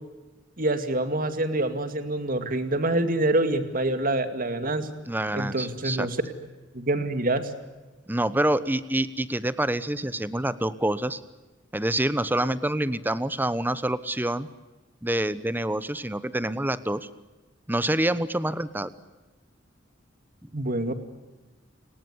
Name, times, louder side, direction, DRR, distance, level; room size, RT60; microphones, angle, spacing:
voice 1, 0.6-4.9 5.3-6.2 6.7-7.5 20.5-20.9, right 2 dB, 45° right, 9 dB, 2.4 m, -26 dB
voice 2, 5.0-6.1 8.1-11.2 11.7-14.5 15.0-17.1 17.7-18.9, right 1 dB, 10° right, 15 dB, 1.0 m, -27 dB
30.0 x 19.0 x 9.8 m, 1.2 s
head